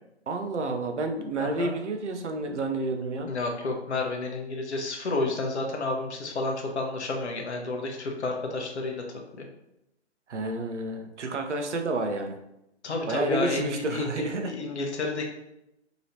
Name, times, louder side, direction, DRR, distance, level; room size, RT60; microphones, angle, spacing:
voice 1, 0.3-3.3 10.3-12.4 13.1-14.5, right 2 dB, 80° right, 4 dB, 0.7 m, -30 dB
voice 2, 1.4-1.7 3.3-9.0 9.3-9.4 12.8-15.3, left 2 dB, 70° left, 2 dB, 0.9 m, -31 dB
3.1 x 2.9 x 2.7 m, 0.86 s
figure-of-eight pair, 140°, 35 cm